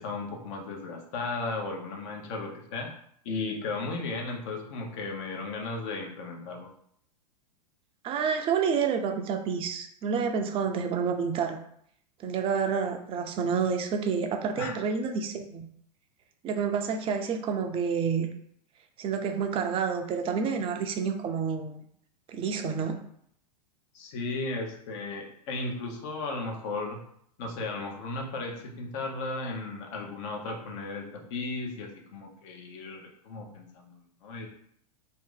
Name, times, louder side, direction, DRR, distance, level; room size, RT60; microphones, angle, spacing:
voice 1, 0.0-2.9 3.2-6.7 14.6-14.7 23.9-27.0 27.4-34.5, left 3 dB, 50° left, 1 dB, 0.9 m, -35 dB
voice 2, 8.0-11.6 12.2-15.7 16.4-18.3 19.0-21.8 22.3-23.0, right 6 dB, 25° right, 5 dB, 0.5 m, -29 dB
2.7 x 2.6 x 3.7 m, 0.67 s
figure-of-eight pair, 100°, 21 cm